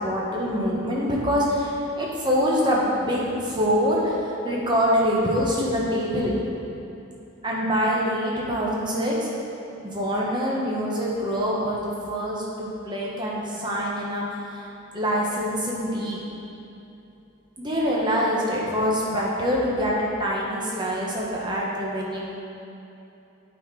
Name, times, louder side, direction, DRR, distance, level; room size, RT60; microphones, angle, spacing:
voice 1, 0.0-6.4 7.4-9.3 9.8-14.7 14.9-16.2 17.6-22.2, equal, 20° right, -4 dB, 1.1 m, -25 dB
8.8 x 4.3 x 4.7 m, 2.9 s
head